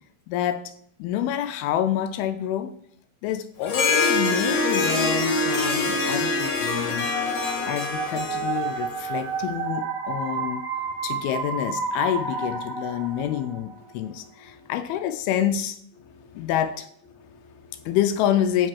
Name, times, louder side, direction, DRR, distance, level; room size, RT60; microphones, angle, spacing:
voice 1, 0.3-0.7 1.0-2.7 3.2-10.6 11.0-15.8 16.4-16.9 17.9-18.7, left 10 dB, 85° left, 10 dB, 2.4 m, -27 dB
Harp, 3.6-9.4, left 3 dB, 50° left, 2.2 m, -25 dB
sound 1, 7.0-13.8, right 4 dB, 75° right, 0.9 m, -30 dB
voice 2, 13.8-14.7 16.0-16.5 17.1-18.0, left 4 dB, 70° left, 4 dB, 1.8 m, -53 dB
7.9 x 5.3 x 5.6 m, 0.68 s
omnidirectional pair, 4.5 m